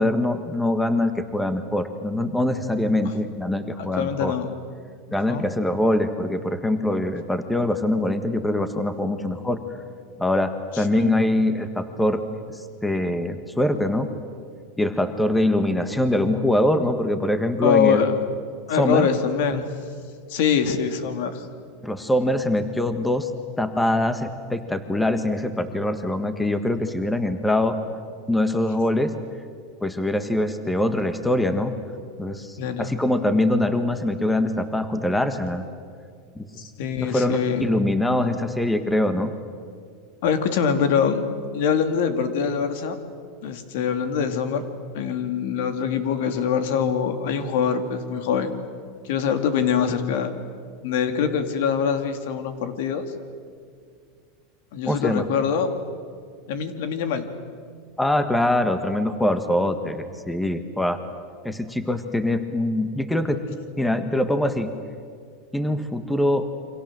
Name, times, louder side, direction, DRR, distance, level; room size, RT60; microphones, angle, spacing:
voice 1, 0.0-4.3 5.1-9.6 10.2-12.2 12.8-14.1 14.8-18.0 18.8-19.1 21.8-23.3 23.6-27.8 28.3-29.1 29.8-31.7 32.2-35.7 36.3-36.6 37.0-39.3 54.9-55.2 58.0-61.0 61.4-63.4 63.8-64.7 65.5-66.5, left 1 dB, 5° left, 9 dB, 1.5 m, -23 dB
voice 2, 3.8-4.6 5.3-5.5 10.7-11.3 17.6-18.2 18.7-19.6 20.3-21.5 32.6-32.9 36.8-37.7 40.2-41.2 41.5-43.0 43.4-44.7 44.9-48.5 49.0-50.3 50.8-53.1 54.7-55.7 56.5-57.3, left 7 dB, 70° left, 8 dB, 2.8 m, -24 dB
29.0 x 25.5 x 7.7 m, 2.1 s
supercardioid pair, 135°, 0 cm